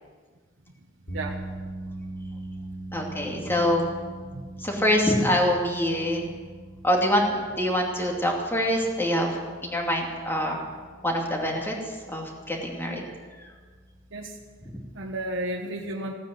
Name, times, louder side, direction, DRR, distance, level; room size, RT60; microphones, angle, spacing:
sound 1, 1.1-15.3, right 2 dB, 80° left, 3.1 m, -42 dB
voice 1, 2.9-3.8 4.6-6.3 6.8-10.6 11.0-13.1 13.4-13.5 14.6-14.8, equal, 10° left, 0 dB, 2.5 m, -25 dB
voice 2, 14.9-16.1, right 1 dB, 70° right, -1 dB, 1.3 m, -32 dB
16.5 x 9.3 x 7.9 m, 1.5 s
head